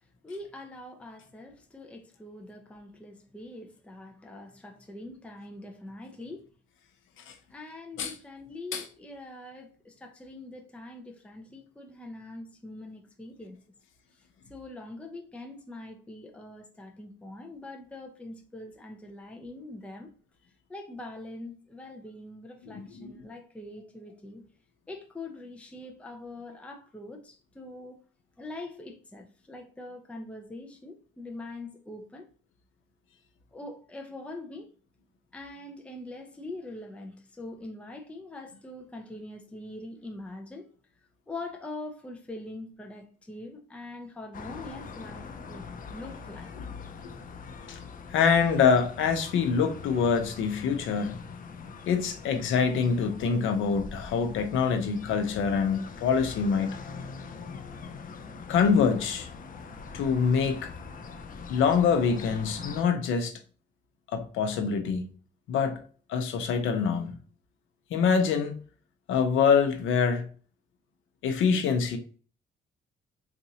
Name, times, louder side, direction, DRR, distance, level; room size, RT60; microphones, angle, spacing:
voice 1, 0.2-6.5 7.5-13.6 14.5-20.1 20.7-24.4 24.9-28.0 28.4-32.3 33.5-34.7 35.3-40.7 41.3-46.5 47.1-47.5, left 2 dB, 5° left, 0.6 m, -43 dB
voice 2, 22.6-23.1 46.6-46.7 47.7-47.8 48.1-51.1 51.9-56.8 58.5-59.3 59.9-60.7 61.5-63.4 64.1-65.0 65.5-65.8 66.1-67.1 67.9-68.6 69.1-70.3 71.2-72.0, left 6 dB, 80° left, 0.8 m, -25 dB
sound 1, 44.3-62.8, left 5 dB, 45° left, 0.6 m, -43 dB
4.1 x 2.6 x 2.8 m
cardioid pair, 90°, 20 cm